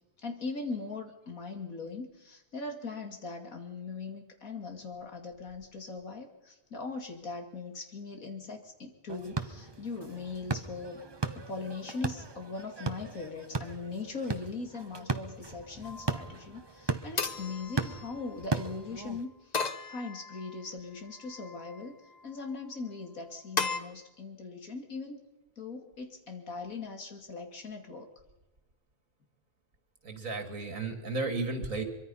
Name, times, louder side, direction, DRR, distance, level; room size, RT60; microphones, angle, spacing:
voice 1, 0.2-11.0 11.3-19.6 19.9-22.0 22.2-25.2 25.6-28.1, left 4 dB, 75° left, 4 dB, 2.9 m, -40 dB
sound 1, 9.1-19.2, right 4 dB, 20° right, 0.9 m, -37 dB
sound 2, 15.8-16.3 17.2-18.5 19.5-20.6 21.2-21.8 23.6-23.8, left 4 dB, 35° left, 1.0 m, -36 dB
voice 2, 30.0-31.8, right 3 dB, 70° right, 6 dB, 3.0 m, -33 dB
24.0 x 23.5 x 5.6 m, 1.1 s
omnidirectional pair, 1.5 m